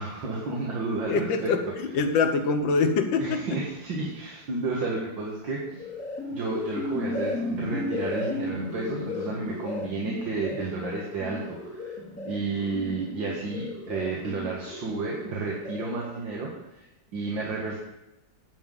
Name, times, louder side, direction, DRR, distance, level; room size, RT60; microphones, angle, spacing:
voice 1, 0.0-1.5 3.2-5.8 6.3-12.0 12.2-16.9 17.1-17.8, right 3 dB, 80° right, -3 dB, 2.4 m, -31 dB
voice 2, 1.1-1.6 1.9-3.5, left 4 dB, 85° left, 7 dB, 1.8 m, -24 dB
sound 1, 5.6-16.2, left 2 dB, 45° left, 3.2 m, -35 dB
10.5 x 5.8 x 7.7 m, 0.95 s
omnidirectional pair, 2.0 m